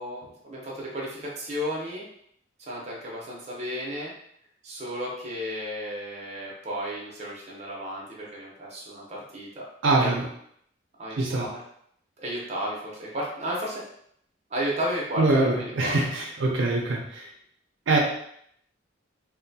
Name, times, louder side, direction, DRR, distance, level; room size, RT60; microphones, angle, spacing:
voice 1, 0.0-2.0 2.7-4.1 4.6-9.6 10.0-10.1 11.0-11.6 12.2-13.8 14.5-16.0, equal, 35° right, -4 dB, 0.7 m, -33 dB
voice 2, 9.8-10.3 11.2-11.5 15.2-17.3 17.9-18.0, right 2 dB, 80° right, -1 dB, 0.5 m, -23 dB
2.7 x 2.1 x 2.7 m, 0.68 s
head